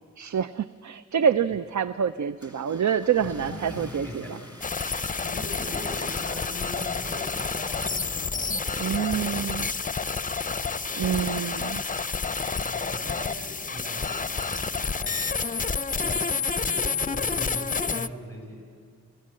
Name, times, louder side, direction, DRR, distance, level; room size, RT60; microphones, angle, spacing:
voice 1, 0.2-4.4 8.8-9.6 11.0-11.8, right 8 dB, 75° right, 14 dB, 0.5 m, -27 dB
Car / Engine starting, 1.3-9.3, equal, 15° right, 1.9 m, -48 dB
voice 2, 3.2-4.4 5.2-7.9 8.3-9.5 10.5-10.9 12.5-16.3 16.6-18.6, left 1 dB, 50° right, -1 dB, 7.7 m, -40 dB
sound 1, 4.6-18.1, left 4 dB, 30° left, 0.5 m, -29 dB
28.5 x 15.0 x 7.6 m, 2.2 s
wide cardioid pair, 65°, 29 cm